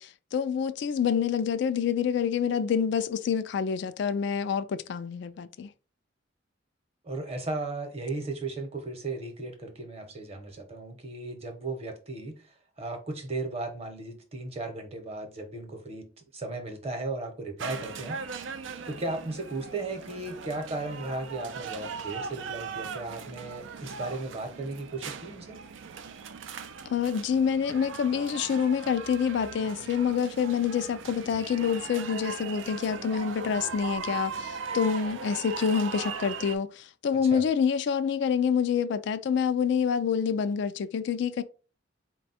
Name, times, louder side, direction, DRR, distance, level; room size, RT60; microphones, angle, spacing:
voice 1, 0.0-5.7 26.9-41.4, left 7 dB, 65° left, 0.3 m, -27 dB
voice 2, 7.0-12.4 12.8-16.1 16.3-18.4 18.9-25.6 37.2-37.4, right 2 dB, 35° right, 0.8 m, -36 dB
sound 1, 17.6-36.5, right 5 dB, 80° right, 0.4 m, -39 dB
4.1 x 2.3 x 4.1 m
head